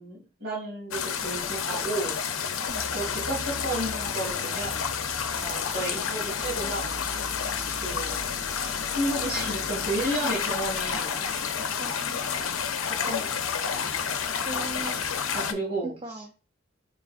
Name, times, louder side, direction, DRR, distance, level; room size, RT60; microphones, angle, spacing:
voice 1, 0.0-2.5 2.9-4.9 5.3-7.0 7.8-8.2 8.9-11.8 13.1-13.4 15.3-16.4, right 2 dB, 55° right, -5 dB, 2.2 m, -33 dB
sound 1, 0.9-15.5, left 7 dB, 80° left, 0.6 m, -30 dB
sound 2, 2.7-10.2, left 1 dB, 20° left, 1.2 m, -42 dB
voice 2, 11.8-12.5 14.5-15.0 15.8-16.4, right 1 dB, 25° right, 3 dB, 0.4 m, -39 dB
4.6 x 3.6 x 2.4 m, 0.34 s
head